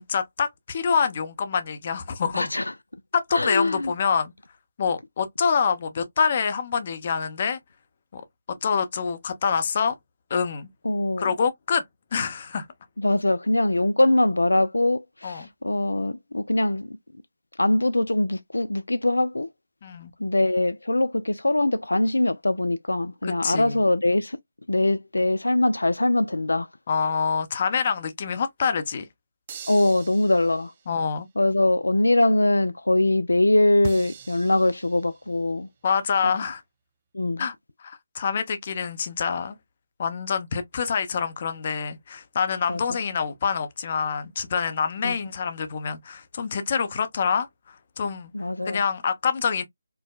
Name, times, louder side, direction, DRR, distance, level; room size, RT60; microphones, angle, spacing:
voice 1, 0.0-2.5 3.1-4.3 4.8-7.6 8.1-8.2 8.6-9.9 10.3-10.7 11.2-11.8 12.1-12.7 15.2-15.5 19.8-20.1 23.2-23.8 26.9-29.1 30.9-31.3 35.8-36.6 37.4-37.5 37.8-39.6 40.0-48.3 48.7-49.6, left 6 dB, 40° left, 0.6 m, -26 dB
voice 2, 2.3-2.7 3.3-3.9 10.8-11.3 13.0-17.0 17.6-19.5 20.2-24.4 24.7-26.7 29.7-30.7 31.4-35.7 36.2-36.3 37.1-37.4 42.7-42.8 45.0-45.2 48.3-48.8, left 2 dB, 80° left, 0.3 m, -22 dB
sound 1, 29.5-31.0 33.8-35.4, right 7 dB, 30° right, 0.4 m, -41 dB
4.6 x 2.1 x 2.3 m
figure-of-eight pair, 155°, 0 cm